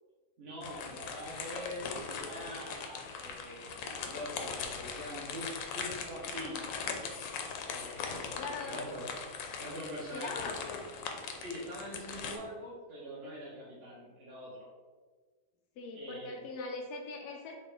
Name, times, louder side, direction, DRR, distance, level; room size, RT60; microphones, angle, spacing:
voice 1, 0.4-6.6 7.6-9.1 9.6-10.5 11.4-14.7 15.9-16.4, equal, 50° right, -6 dB, 0.8 m, -44 dB
sound 1, 0.6-12.4, left 5 dB, 75° left, 1.2 m, -40 dB
voice 2, 8.4-8.9 10.1-10.9 12.4-12.5 15.8-17.5, left 3 dB, 90° left, 2 dB, 0.8 m, -41 dB
4.3 x 2.4 x 4.8 m, 1.4 s
omnidirectional pair, 2.2 m